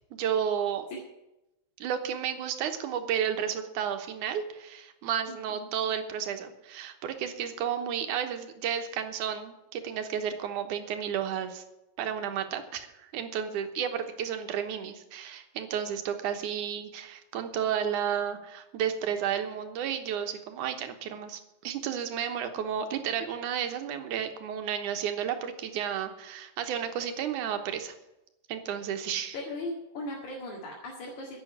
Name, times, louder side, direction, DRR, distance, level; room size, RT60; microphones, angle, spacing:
voice 1, 0.1-0.9 1.8-11.6 12.0-27.9 28.5-29.4, right 8 dB, 80° right, 7 dB, 2.6 m, -32 dB
voice 2, 29.3-31.4, left 1 dB, 70° left, -2 dB, 3.4 m, -38 dB
11.0 x 7.6 x 9.7 m, 0.93 s
omnidirectional pair, 3.5 m